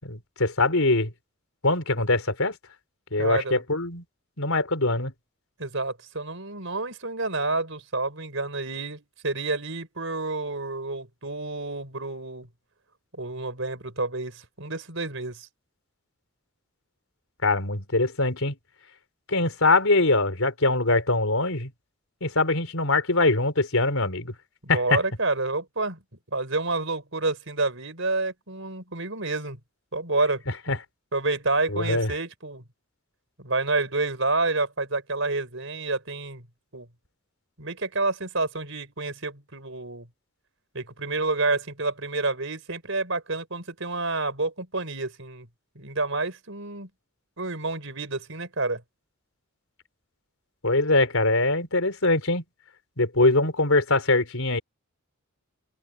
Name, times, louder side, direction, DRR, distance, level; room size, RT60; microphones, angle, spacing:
voice 1, 0.0-1.1 1.6-2.6 3.1-4.0 4.4-5.1 17.4-18.5 19.3-21.7 22.2-24.3 24.7-25.0 30.7-30.8 31.7-32.1 50.6-52.4 53.0-54.6, left 2 dB, 70° left, 4.4 m, -23 dB
voice 2, 3.2-3.6 5.6-12.5 13.1-15.5 24.6-26.0 26.3-29.6 29.9-30.8 31.1-32.6 33.4-36.4 36.7-36.9 37.6-40.1 40.7-45.5 45.8-46.9 47.4-48.8, right 3 dB, 60° right, 5.5 m, -29 dB
head